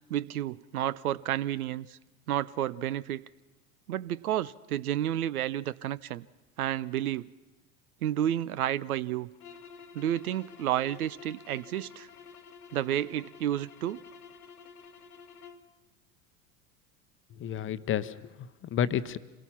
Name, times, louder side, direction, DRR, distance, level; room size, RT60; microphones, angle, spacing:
voice 1, 0.1-2.0 2.3-3.2 3.9-6.3 6.6-7.3 8.0-9.3 9.9-12.1 12.7-14.0, right 12 dB, 80° right, 19 dB, 0.6 m, -31 dB
sound 1, 9.3-15.7, left 6 dB, 90° left, 1.1 m, -50 dB
voice 2, 17.4-19.2, left 9 dB, 30° left, 13 dB, 0.8 m, -31 dB
26.0 x 17.5 x 5.8 m, 1.1 s
hypercardioid pair, 85°, 43 cm